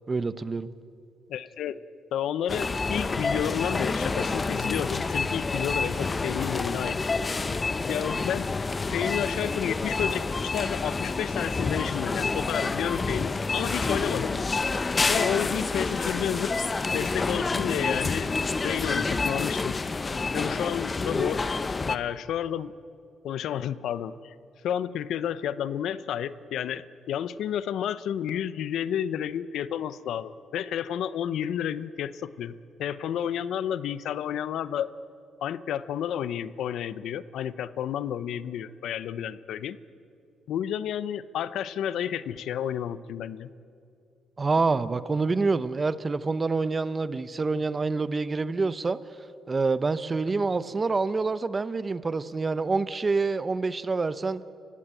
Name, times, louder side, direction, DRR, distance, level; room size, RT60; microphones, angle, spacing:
voice 1, 0.1-0.7 44.4-49.0 49.5-54.4, right 3 dB, 30° right, 15 dB, 0.9 m, -27 dB
voice 2, 1.3-1.8 2.1-7.2 7.9-8.5 8.9-14.4 15.1-18.3 18.6-19.8 20.3-21.4 21.9-22.7 23.2-24.3 24.6-32.5 32.8-34.9 35.4-39.8 40.5-43.5, left 9 dB, 75° left, 16 dB, 0.7 m, -31 dB
sound 1, 2.5-22.0, left 3 dB, 30° left, 0.9 m, -28 dB
29.0 x 16.0 x 9.0 m, 2.5 s
cardioid pair, 90°, 0 cm